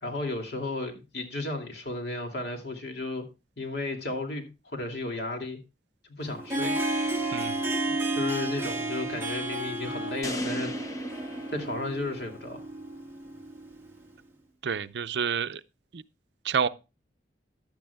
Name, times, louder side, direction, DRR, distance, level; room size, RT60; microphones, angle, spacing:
voice 1, 0.0-3.3 3.6-5.6 6.2-6.8 8.1-10.7 11.5-12.6, left 2 dB, 65° left, 2.5 m, -34 dB
Harp, 6.2-14.0, right 2 dB, 15° right, 1.5 m, -32 dB
sound 1, 10.2-12.5, equal, 20° left, 1.0 m, -37 dB
voice 2, 14.6-15.6 15.9-16.0 16.4-16.7, right 6 dB, 75° right, 0.5 m, -28 dB
15.0 x 10.5 x 2.3 m
head